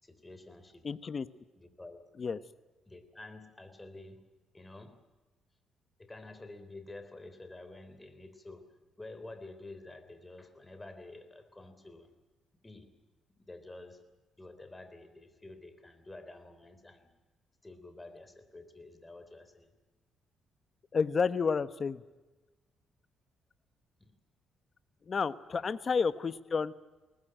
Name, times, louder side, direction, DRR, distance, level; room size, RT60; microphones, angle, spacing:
voice 1, 0.0-0.9 1.6-2.0 2.9-4.3 4.5-5.0 6.0-8.7 9.0-12.1 12.6-12.9 13.3-14.0 14.4-17.1 17.6-19.7 24.0-24.2 25.5-25.8, left 2 dB, 15° left, 9 dB, 3.6 m, -49 dB
voice 2, 0.8-1.3 2.2-2.4 20.9-22.0 25.1-26.7, left 5 dB, 40° left, 14 dB, 1.1 m, -30 dB
21.5 x 19.0 x 9.0 m, 1.2 s
cardioid pair, 90°, 0 cm